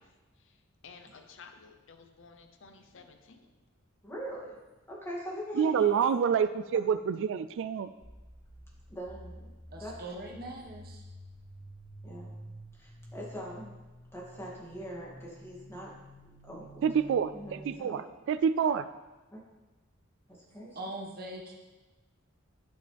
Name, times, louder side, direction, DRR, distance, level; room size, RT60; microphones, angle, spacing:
voice 1, 0.0-3.5, left 5 dB, 65° left, 7 dB, 0.7 m, -54 dB
voice 2, 4.0-4.6 4.9-6.2 8.9-9.5 9.8-10.0 12.0-12.3 12.7-13.7 14.1-15.9 16.2-16.8 17.3-18.0 19.3-19.4 20.3-20.8, equal, 15° left, -4 dB, 2.3 m, -42 dB
voice 3, 5.5-7.9 16.8-18.9, right 7 dB, 65° right, 13 dB, 0.3 m, -27 dB
sound 1, 8.0-17.8, right 1 dB, 15° right, 1.9 m, -50 dB
voice 4, 9.7-11.0 20.7-21.6, right 1 dB, 50° right, 0 dB, 1.4 m, -41 dB
11.0 x 7.6 x 3.4 m, 1.2 s
head